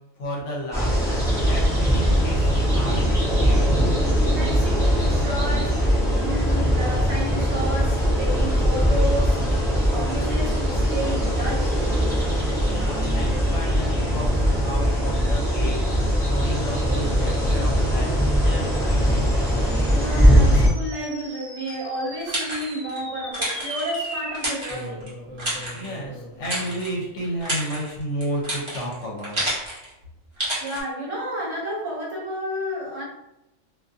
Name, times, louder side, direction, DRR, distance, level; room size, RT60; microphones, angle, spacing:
voice 1, 0.2-3.0 12.6-19.3 25.7-29.4, equal, 70° left, -2 dB, 1.0 m, -32 dB
sound 1, 0.7-20.7, equal, 5° left, 0.4 m, -21 dB
voice 2, 4.3-11.8 19.9-25.0 30.6-33.1, equal, 60° right, -4 dB, 1.0 m, -31 dB
sound 2, 17.2-27.9, equal, 25° left, 0.8 m, -40 dB
sound 3, 21.6-23.0 23.3-25.1 25.4-26.0 26.4-26.9 27.2-29.9 30.4-30.8, right 1 dB, 25° right, 0.8 m, -30 dB
2.5 x 2.5 x 2.4 m, 0.91 s
omnidirectional pair, 1.4 m